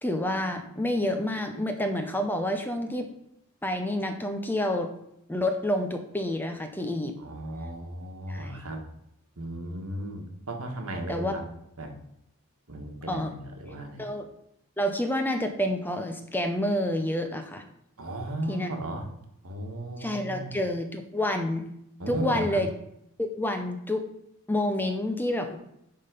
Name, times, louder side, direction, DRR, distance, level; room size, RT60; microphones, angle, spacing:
voice 1, 0.0-3.1 3.6-4.9 5.3-7.2 8.3-8.6 11.1-11.3 13.1-13.3 14.0-14.3 14.8-17.6 18.5-18.7 20.0-21.6 22.1-22.7 23.2-24.1 24.5-25.6, left 1 dB, 10° left, 6 dB, 0.6 m, -28 dB
voice 2, 7.2-8.8 9.4-11.4 11.8-11.9 12.7-14.0 18.0-19.1 19.4-20.5 22.0-22.6, right 1 dB, 75° right, 3 dB, 1.6 m, -35 dB
11.0 x 3.8 x 5.2 m, 0.77 s
head